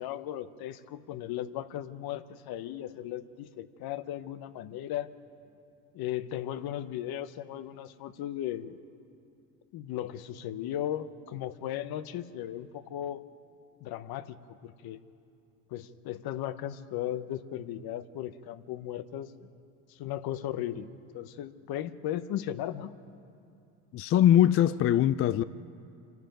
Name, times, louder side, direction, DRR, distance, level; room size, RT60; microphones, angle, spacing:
voice 1, 0.0-5.1 5.9-8.8 9.7-13.2 13.8-14.4 14.6-15.0 15.7-19.5 19.9-22.9, left 11 dB, 55° left, 1.0 m, -36 dB
voice 2, 23.9-25.4, left 11 dB, 35° left, 0.4 m, -22 dB
26.0 x 12.0 x 9.1 m
supercardioid pair, 90°, 43 cm